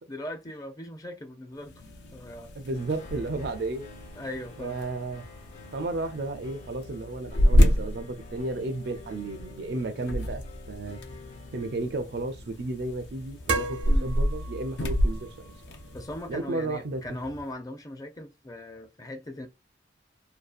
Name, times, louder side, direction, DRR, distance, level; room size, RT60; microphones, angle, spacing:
voice 1, 0.0-1.7 2.1-2.5 4.2-4.8 13.9-14.1 15.9-19.5, left 1 dB, 20° left, 0.4 m, -39 dB
sound 1, 1.6-16.4, equal, 75° left, 0.5 m, -29 dB
voice 2, 2.6-3.9 4.6-5.3 5.7-11.0 11.5-15.3 16.3-17.0, right 2 dB, 65° right, 0.4 m, -33 dB
sound 2, 2.7-11.8, left 4 dB, 45° left, 0.8 m, -49 dB
sound 3, 11.7-17.5, right 3 dB, 90° right, 0.8 m, -38 dB
2.6 x 2.3 x 2.3 m
head